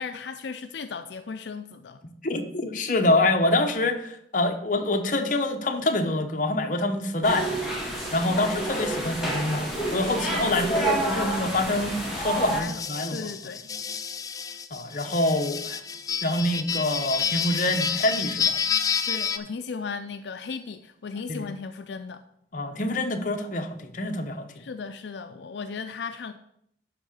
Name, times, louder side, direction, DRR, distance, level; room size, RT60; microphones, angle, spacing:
voice 1, 0.0-2.0 12.3-12.8 13.1-13.6 19.1-22.2 24.6-26.3, left 5 dB, 80° left, 8 dB, 0.5 m, -36 dB
voice 2, 2.2-7.5 8.1-13.2 14.7-15.8 16.2-18.6 21.3-21.4 22.5-24.6, left 2 dB, 45° left, 5 dB, 1.0 m, -26 dB
sound 1, 7.2-12.6, right 1 dB, ahead, 1.9 m, -29 dB
sound 2, 12.6-19.4, left 6 dB, 20° left, 0.4 m, -29 dB
11.0 x 3.8 x 6.5 m, 0.72 s
head